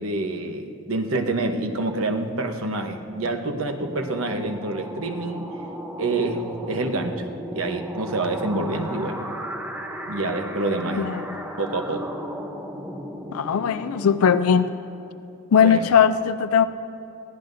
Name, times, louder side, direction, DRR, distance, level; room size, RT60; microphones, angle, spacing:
voice 1, 0.0-5.5 6.0-9.2 10.1-11.1 11.6-12.2 15.6-15.9, right 2 dB, 65° right, 5 dB, 1.0 m, -27 dB
sound 1, 2.9-15.3, equal, 10° right, 0.7 m, -36 dB
voice 2, 13.3-14.7 15.5-16.7, left 7 dB, 70° left, 12 dB, 0.4 m, -19 dB
22.5 x 15.5 x 2.7 m, 2.7 s
head